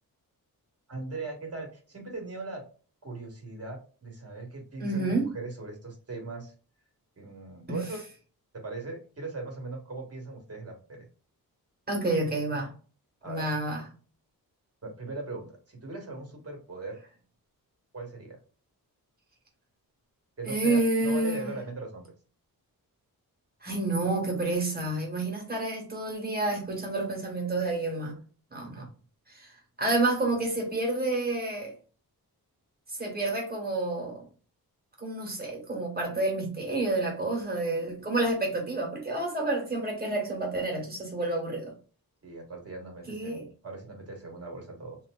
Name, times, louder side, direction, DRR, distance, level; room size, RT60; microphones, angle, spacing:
voice 1, 0.9-2.6 3.0-6.5 7.2-8.0 8.6-11.1 13.2-13.5 14.8-17.0 17.9-18.4 20.4-22.1 28.8-28.9 42.2-45.0, right 3 dB, 40° right, 1.3 m, -39 dB
voice 2, 4.8-5.3 7.7-7.8 11.9-12.7 13.2-13.8 20.4-21.5 23.6-28.2 28.5-28.9 29.3-31.7 32.9-34.3 35.0-41.7 43.1-43.4, right 2 dB, 25° right, 1.4 m, -29 dB
3.5 x 2.8 x 2.3 m
wide cardioid pair, 145°, 37 cm